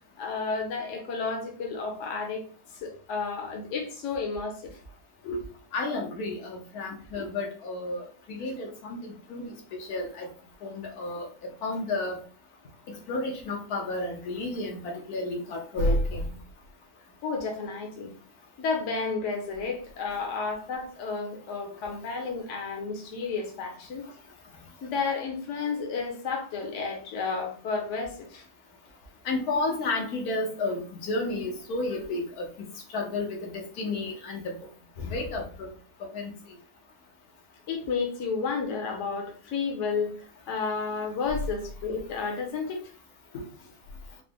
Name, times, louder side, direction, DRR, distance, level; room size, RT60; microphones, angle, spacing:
voice 1, 0.2-2.4 2.7-4.8 5.2-5.4 7.2-7.3 17.2-18.1 18.6-24.1 24.8-28.4 37.7-42.8 43.3-43.7, left 4 dB, 60° left, 2 dB, 1.1 m, -32 dB
voice 2, 5.7-9.5 9.8-10.3 10.6-11.3 11.6-12.2 12.9-16.2 29.2-32.5 32.9-34.6 35.0-35.7 36.1-36.3, left 2 dB, 80° left, 0 dB, 1.3 m, -31 dB
3.9 x 2.1 x 3.4 m, 0.41 s
omnidirectional pair, 1.6 m